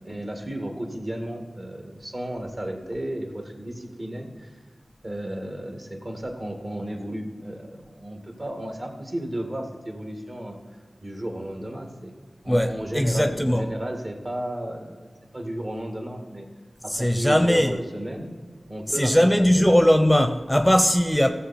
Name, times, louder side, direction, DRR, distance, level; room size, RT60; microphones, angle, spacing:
voice 1, 0.0-4.5 5.0-10.6 11.0-12.1 12.4-16.5 16.8-18.3 18.7-19.7, right 1 dB, 45° right, 2.0 m, -33 dB
voice 2, 12.5-13.6 16.9-17.7 19.0-21.3, equal, 5° left, 0.7 m, -19 dB
15.0 x 7.0 x 4.2 m
cardioid pair, 40°, 0 cm